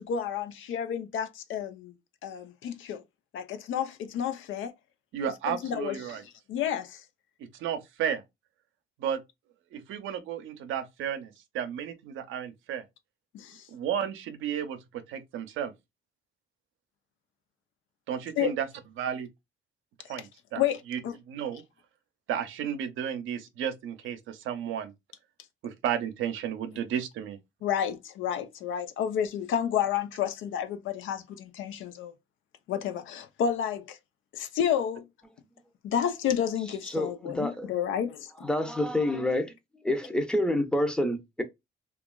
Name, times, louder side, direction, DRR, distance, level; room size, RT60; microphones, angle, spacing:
voice 1, 0.0-1.9 2.2-3.0 3.3-4.7 5.5-6.2 6.5-7.0 13.3-13.7 18.4-18.5 20.6-21.2 27.6-32.1 32.7-34.0 34.3-35.1 35.8-38.5, left 9 dB, 80° left, 0.6 m, -30 dB
voice 2, 5.1-6.2 7.6-8.2 9.0-9.2 9.7-12.8 13.7-14.8 15.1-15.7 18.1-18.7 19.0-19.3 20.1-20.6 20.9-21.0 21.3-21.6 22.3-24.9 25.6-27.4, right 9 dB, 85° right, 0.6 m, -33 dB
voice 3, 36.8-37.7 38.4-39.5 39.8-41.4, left 1 dB, 5° left, 0.6 m, -28 dB
2.9 x 2.3 x 2.3 m
cardioid pair, 90°, 20 cm